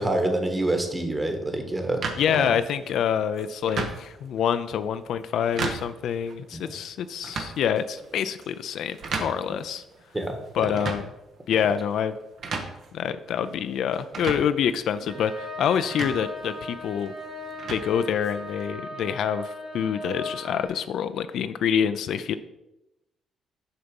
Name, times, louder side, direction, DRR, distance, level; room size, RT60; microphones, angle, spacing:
voice 1, 0.0-2.5 6.5-6.7 10.1-10.7, right 1 dB, 20° right, 5 dB, 1.5 m, -27 dB
sound 1, 2.0-18.7, right 4 dB, 60° right, 1.2 m, -38 dB
voice 2, 2.2-9.8 10.5-11.1 11.5-12.2 12.9-17.1 17.7-22.3, left 8 dB, 75° left, 11 dB, 0.4 m, -26 dB
sound 2, 15.1-20.7, left 1 dB, 45° right, 2.5 m, -37 dB
6.7 x 5.8 x 5.3 m, 0.94 s
cardioid pair, 90°, 0 cm